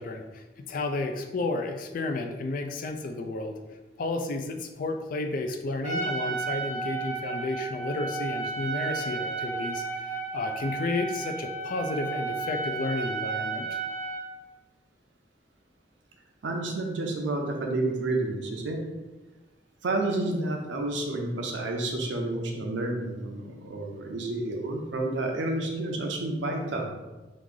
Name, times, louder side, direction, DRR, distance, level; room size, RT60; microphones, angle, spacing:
voice 1, 0.0-3.6 4.0-9.9 10.3-13.8, left 2 dB, 50° left, 6 dB, 0.3 m, -32 dB
Trumpet, 5.8-14.3, right 4 dB, 40° right, 1.1 m, -33 dB
voice 2, 16.4-18.8 19.8-26.9, right 2 dB, 90° right, 1 dB, 0.6 m, -30 dB
3.1 x 2.5 x 3.7 m, 1.1 s
head